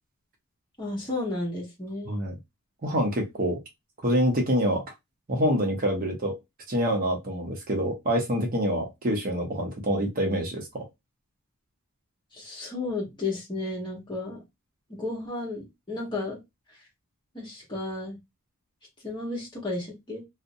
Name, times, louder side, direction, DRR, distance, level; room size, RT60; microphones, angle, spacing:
voice 1, 0.8-2.2 12.3-14.4 14.9-16.4 17.3-18.2 19.0-20.2, left 2 dB, 20° left, -2 dB, 1.0 m, -33 dB
voice 2, 2.8-3.6 4.0-4.8 5.3-6.4 6.7-10.9, equal, 40° right, 2 dB, 0.7 m, -26 dB
2.6 x 2.0 x 2.6 m, 0.20 s
head